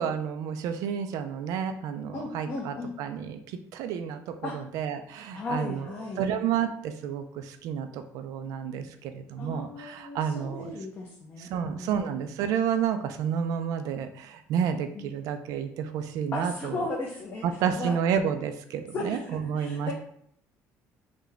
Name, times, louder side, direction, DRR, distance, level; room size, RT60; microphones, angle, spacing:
voice 1, 0.0-5.9 6.2-10.7 11.4-16.8 17.4-19.9, right 8 dB, 80° right, 8 dB, 0.4 m, -30 dB
voice 2, 2.1-2.9 4.4-4.6 5.3-6.3 9.4-12.0 14.9-15.1 16.3-17.4 17.8-18.0 18.9-19.9, left 2 dB, 35° left, -2 dB, 0.6 m, -36 dB
3.7 x 2.1 x 3.4 m, 0.66 s
cardioid pair, 120°, 6 cm